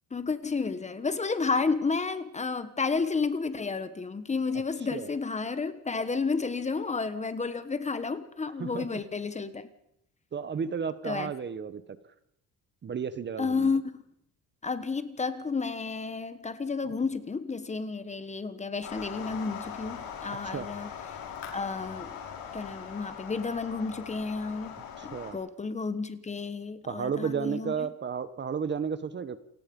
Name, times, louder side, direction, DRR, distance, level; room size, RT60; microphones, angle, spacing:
voice 1, 0.1-9.7 11.0-11.3 13.4-13.8 14.6-20.9 21.5-22.1 22.5-24.8 25.0-27.9, left 4 dB, 20° left, 1.3 m, -31 dB
voice 2, 10.3-11.8 12.8-13.7 20.4-20.7 25.0-25.4 26.9-29.4, right 6 dB, 30° right, 1.3 m, -32 dB
sound 1, 18.8-25.3, left 7 dB, 75° left, 5.7 m, -41 dB
29.0 x 18.0 x 5.4 m
cardioid pair, 140°, 35 cm